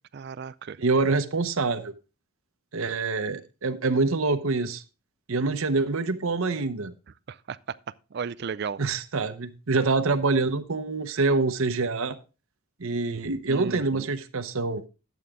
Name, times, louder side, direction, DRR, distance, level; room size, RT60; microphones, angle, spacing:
voice 1, 0.1-0.8 7.3-7.6 8.1-8.8 13.5-14.1, right 6 dB, 50° right, 0.4 m, -34 dB
voice 2, 0.8-1.9 2.7-4.8 5.3-6.9 8.8-12.2 12.8-14.9, right 3 dB, 70° right, 0.8 m, -26 dB
11.0 x 8.1 x 3.6 m
head